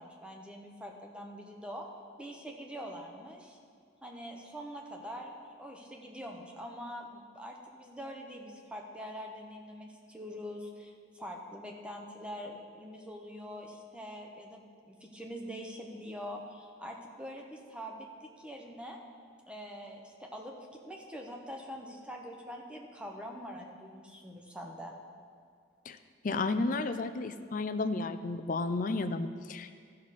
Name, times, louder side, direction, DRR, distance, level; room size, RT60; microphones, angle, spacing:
voice 1, 0.0-1.9 2.2-3.6 4.0-19.0 19.5-20.5 20.9-24.9, equal, 5° right, 1 dB, 0.9 m, -44 dB
voice 2, 26.2-29.7, left 3 dB, 45° left, 10 dB, 0.4 m, -32 dB
13.5 x 6.4 x 4.2 m, 2.2 s
head